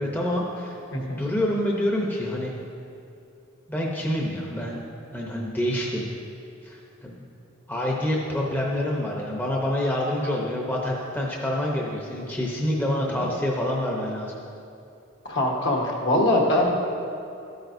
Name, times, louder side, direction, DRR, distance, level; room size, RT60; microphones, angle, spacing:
voice 1, 0.0-0.7 1.0-2.5 3.7-4.8 5.1-6.0 6.6-7.2 7.7-14.3, left 1 dB, 10° left, -2 dB, 0.7 m, -27 dB
voice 2, 0.9-1.2 12.8-13.2 15.2-16.8, left 1 dB, 60° left, -1 dB, 1.4 m, -23 dB
12.5 x 9.1 x 2.7 m, 2.6 s
head